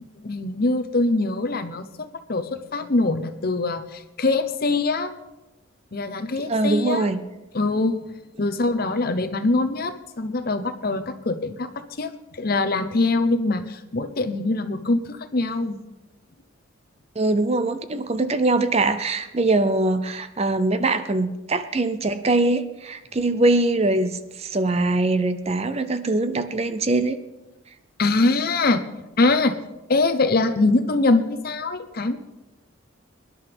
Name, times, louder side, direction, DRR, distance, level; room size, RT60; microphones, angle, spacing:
voice 1, 0.2-5.1 5.9-7.1 7.5-8.0 8.4-15.8 28.0-28.8 29.2-29.5 29.9-32.2, left 2 dB, 45° left, 10 dB, 0.7 m, -23 dB
voice 2, 6.5-7.2 17.2-27.2, right 2 dB, 30° right, 11 dB, 0.5 m, -22 dB
23.5 x 11.0 x 3.5 m, 1.0 s
head